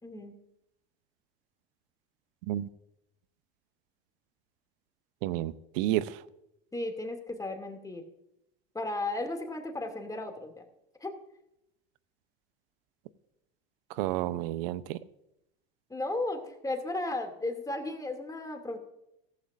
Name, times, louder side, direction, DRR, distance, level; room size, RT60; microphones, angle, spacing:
voice 1, 0.0-0.3 6.7-8.0 8.7-10.6 11.0-11.1 15.9-18.8, left 2 dB, 10° left, 4 dB, 2.6 m, -35 dB
voice 2, 5.2-6.2 14.0-15.0, right 14 dB, 65° right, 16 dB, 0.8 m, -31 dB
16.0 x 14.5 x 2.6 m, 0.83 s
hypercardioid pair, 80°, 30 cm